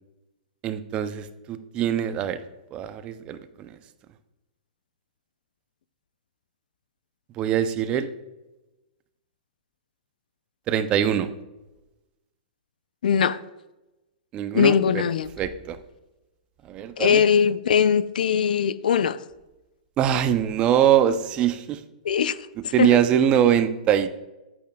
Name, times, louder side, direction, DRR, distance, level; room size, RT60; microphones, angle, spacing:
voice 1, 0.6-2.4 2.7-3.4 7.4-8.1 10.7-11.3 14.3-15.0 15.4-15.8 16.7-17.2 20.0-21.8 22.7-24.1, right 10 dB, 20° right, 11 dB, 0.4 m, -22 dB
voice 2, 13.0-13.4 14.5-15.3 17.0-19.2 22.0-22.4 22.6-23.0, left 7 dB, 85° left, 16 dB, 0.4 m, -21 dB
8.8 x 8.4 x 2.2 m, 1.0 s
hypercardioid pair, 160°, 4 cm